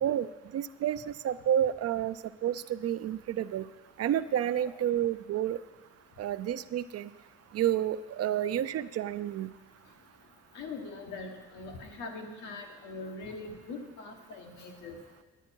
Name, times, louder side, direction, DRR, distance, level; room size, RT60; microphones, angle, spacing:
voice 1, 0.0-2.2 2.4-3.7 4.0-5.6 6.2-7.1 7.5-9.5, right 10 dB, 55° right, 14 dB, 0.4 m, -30 dB
voice 2, 10.5-15.0, left 3 dB, 90° left, 2 dB, 1.5 m, -42 dB
9.9 x 9.2 x 4.5 m, 1.3 s
cardioid pair, 90°, 30 cm